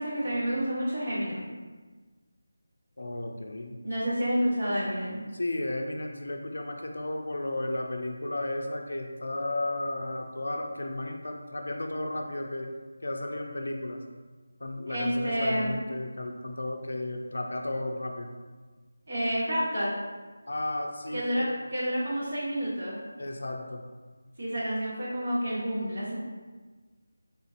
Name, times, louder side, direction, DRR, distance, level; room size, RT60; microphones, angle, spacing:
voice 1, 0.0-1.5 3.8-5.2 14.9-15.8 19.1-19.9 21.1-23.0 24.4-26.2, equal, 50° right, -8 dB, 1.5 m, -29 dB
voice 2, 3.0-3.8 5.3-12.7 13.0-14.0 14.6-18.3 20.5-21.5 23.2-23.8, left 1 dB, 70° left, 3 dB, 0.4 m, -34 dB
3.6 x 2.5 x 2.8 m, 1.3 s
figure-of-eight pair, 170°, 0 cm